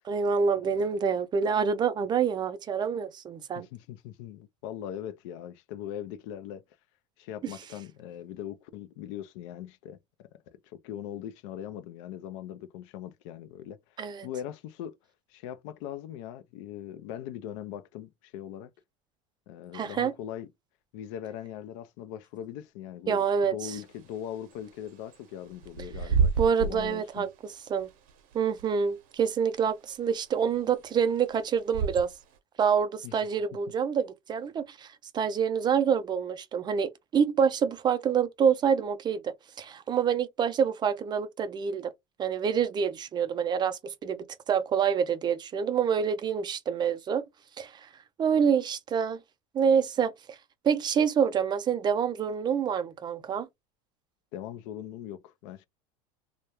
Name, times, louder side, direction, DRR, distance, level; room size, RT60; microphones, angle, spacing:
voice 1, 0.1-3.7 7.4-7.5 14.0-14.3 19.7-20.1 23.1-23.7 26.4-27.3 27.7-27.9 28.3-32.1 32.6-34.9 35.1-41.9 42.2-47.2 47.6-47.7 48.2-49.2 49.5-50.1 50.6-53.5, right 7 dB, 25° right, 0.4 m, -27 dB
voice 2, 3.5-6.6 7.2-10.3 10.7-13.8 14.2-14.9 15.3-18.7 19.5-20.5 20.9-27.3 33.0-33.1 54.3-55.6, left 10 dB, 70° left, 0.4 m, -40 dB
Bird / Wind, 23.7-32.4, right 5 dB, 60° right, 0.7 m, -33 dB
2.2 x 2.1 x 2.9 m
supercardioid pair, 105°, 17 cm